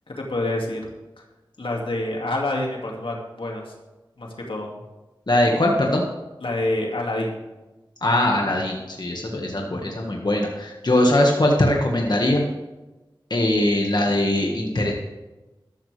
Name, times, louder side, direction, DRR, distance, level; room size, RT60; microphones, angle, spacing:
voice 1, 0.2-0.8 1.6-3.7 4.2-4.7 5.5-5.6 6.4-7.4, left 2 dB, 80° left, -1 dB, 2.4 m, -27 dB
voice 2, 5.3-6.0 8.0-12.4 13.3-14.9, left 1 dB, 55° left, 0 dB, 1.8 m, -21 dB
13.5 x 13.0 x 3.5 m, 1.1 s
wide cardioid pair, 45°, 9 cm